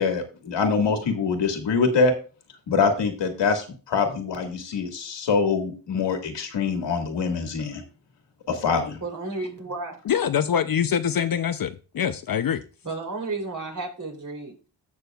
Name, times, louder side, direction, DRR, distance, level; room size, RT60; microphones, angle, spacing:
voice 1, 0.0-2.1 2.7-7.8 8.5-9.0, left 5 dB, 85° left, 1.9 m, -24 dB
voice 2, 9.0-10.0 12.8-14.7, right 3 dB, 45° right, 3.4 m, -32 dB
voice 3, 10.1-12.6, left 8 dB, 55° left, 0.6 m, -24 dB
16.5 x 6.3 x 2.4 m
cardioid pair, 75°, 42 cm